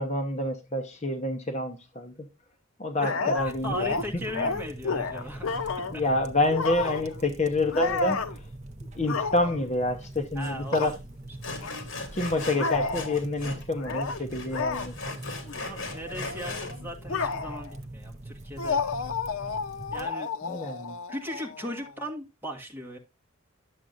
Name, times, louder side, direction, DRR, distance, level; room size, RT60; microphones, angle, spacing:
voice 1, 0.0-2.3 2.8-3.8 4.1-4.3 5.2-8.5 8.9-11.0 12.1-15.0 20.4-21.0, left 2 dB, 35° left, 0.8 m, -28 dB
sound 1, 3.0-6.0 6.5-7.2 7.7-8.4 9.0-9.7 10.7-10.9 11.6-11.7 12.5-13.2 13.7-14.2 14.5-14.9 15.5-15.6 15.9-17.7 18.6-21.9, left 4 dB, 80° left, 0.6 m, -31 dB
voice 2, 3.0-5.6 6.8-6.9 7.7-7.8 10.3-10.8 15.6-18.8 19.9-20.3 21.1-23.0, equal, 10° right, 1.6 m, -38 dB
sound 2, 3.4-20.1, right 1 dB, 35° right, 0.7 m, -43 dB
Sawing, 10.4-10.5 10.8-11.0 11.4-13.6 13.9-16.7, left 3 dB, 60° left, 2.7 m, -38 dB
11.5 x 7.4 x 2.5 m
head